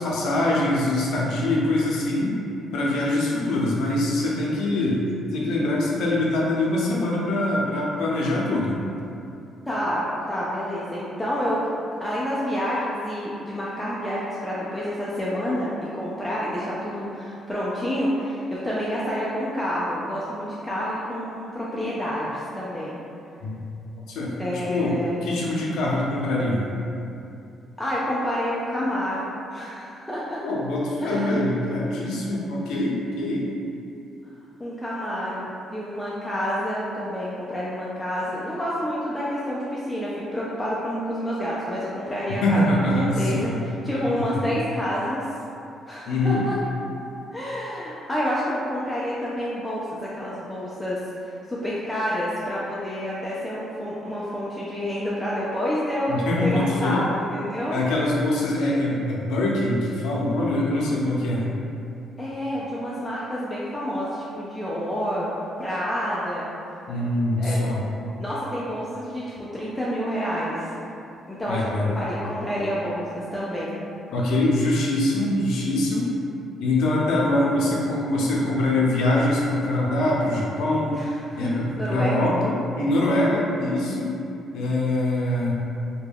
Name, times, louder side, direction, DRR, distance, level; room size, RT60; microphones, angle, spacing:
voice 1, 0.0-2.4 2.7-5.0 5.3-8.8 23.4-23.6 24.1-24.9 25.2-26.7 30.4-33.5 42.4-43.6 43.9-44.5 46.1-46.4 56.1-57.0 57.7-61.5 66.9-67.8 71.5-71.9 74.1-76.1 76.6-81.0 81.4-84.2 84.5-85.5, left 1 dB, 80° left, -4 dB, 0.5 m, -23 dB
voice 2, 9.7-11.7 12.0-23.0 24.4-25.2 27.8-30.4 31.0-31.5 34.6-43.5 43.8-45.2 45.9-46.6 47.3-51.0 51.5-57.8 62.2-65.3 65.6-66.5 67.3-67.6 68.2-70.7 71.3-73.7 80.9-82.3, equal, 5° left, -8 dB, 0.3 m, -28 dB
2.2 x 2.1 x 3.3 m, 2.7 s
cardioid pair, 135°, 0 cm